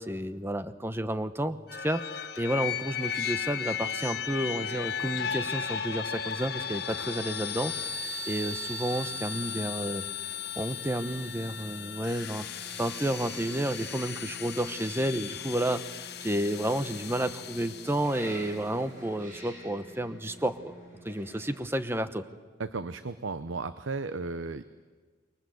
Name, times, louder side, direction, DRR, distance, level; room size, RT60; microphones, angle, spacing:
voice 1, 0.0-8.0 8.3-10.0 10.6-12.5 12.8-20.7 21.0-22.2, right 1 dB, 10° right, 11 dB, 1.0 m, -31 dB
sound 1, 1.7-18.4, left 7 dB, 55° left, 1.3 m, -36 dB
sound 2, 5.0-21.6, equal, 40° right, 7.7 m, -50 dB
voice 2, 22.6-24.6, right 3 dB, 90° right, 12 dB, 0.8 m, -34 dB
28.5 x 23.5 x 7.9 m, 1.5 s
head